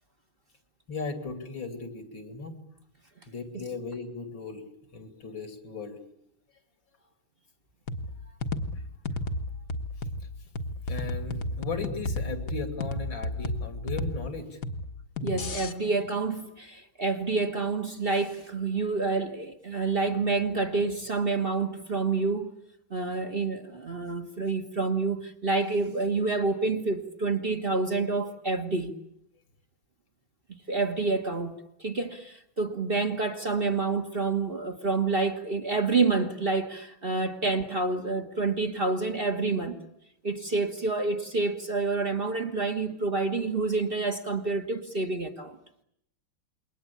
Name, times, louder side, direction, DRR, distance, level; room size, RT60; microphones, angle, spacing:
voice 1, 0.9-2.6 3.3-4.6 4.9-6.0 8.2-8.4 10.9-14.6, left 4 dB, 80° left, 3.5 m, -37 dB
sound 1, 7.9-15.7, left 1 dB, 50° left, 1.7 m, -33 dB
voice 2, 15.2-22.5 22.9-28.9 30.7-39.8 40.2-45.6, right 3 dB, 30° right, 1.5 m, -28 dB
28.0 x 22.0 x 8.5 m
omnidirectional pair, 2.1 m